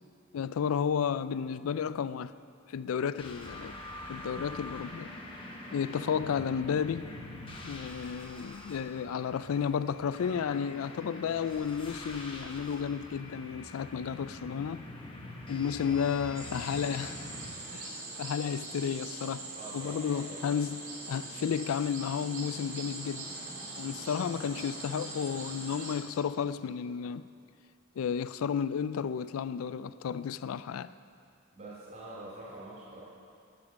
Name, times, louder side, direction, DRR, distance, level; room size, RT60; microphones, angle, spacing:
voice 1, 0.3-2.3 2.7-3.8 4.1-5.1 5.7-7.1 7.6-14.8 15.5-17.2 17.7-19.5 19.7-23.3 23.8-27.3 28.0-30.9, left 7 dB, 80° left, 0.3 m, -32 dB
sound 1, 3.2-17.5, left 1 dB, 25° left, 1.2 m, -45 dB
sound 2, 16.3-25.9, right 2 dB, 70° right, 3.0 m, -42 dB
voice 2, 19.5-20.4 24.2-24.5 31.5-33.0, right 2 dB, 40° right, 2.7 m, -46 dB
11.5 x 7.2 x 6.4 m
head